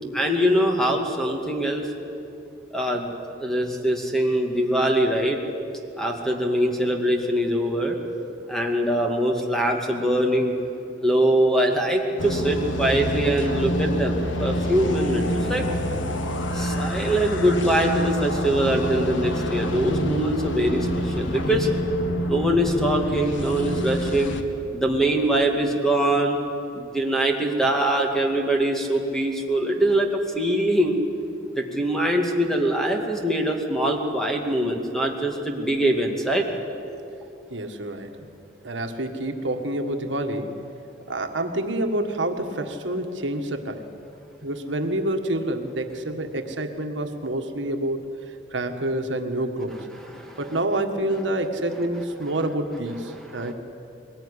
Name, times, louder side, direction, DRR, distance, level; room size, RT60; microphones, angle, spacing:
voice 1, 0.1-1.9 2.7-3.1 3.4-5.4 6.0-8.0 8.5-10.5 11.0-15.7 16.5-21.7 22.2-24.3 24.7-26.4 26.7-30.1 30.3-31.0 31.6-36.4 50.0-50.4 53.1-53.5, right 1 dB, 5° left, 2 dB, 2.3 m, -23 dB
sound 1, 12.2-24.4, equal, 85° left, 1.6 m, -27 dB
voice 2, 37.5-38.3 38.6-40.6 41.1-43.9 44.4-48.2 48.5-49.9 50.4-53.5, right 1 dB, 75° right, 5 dB, 1.7 m, -27 dB
22.0 x 20.0 x 10.0 m, 2.7 s
head